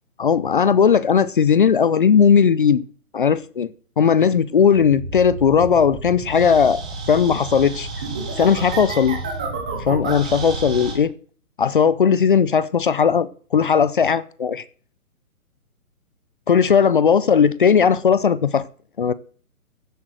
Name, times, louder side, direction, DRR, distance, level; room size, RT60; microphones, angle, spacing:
voice 1, 0.2-2.8 3.1-3.7 4.0-6.8 7.1-7.9 8.4-9.2 9.8-11.1 11.6-14.6 16.5-18.6 19.0-19.1, left 7 dB, 35° left, 0.6 m, -17 dB
sound 1, 4.7-10.9, right 3 dB, 5° right, 0.5 m, -30 dB
15.5 x 7.7 x 6.5 m
hypercardioid pair, 155°, 44 cm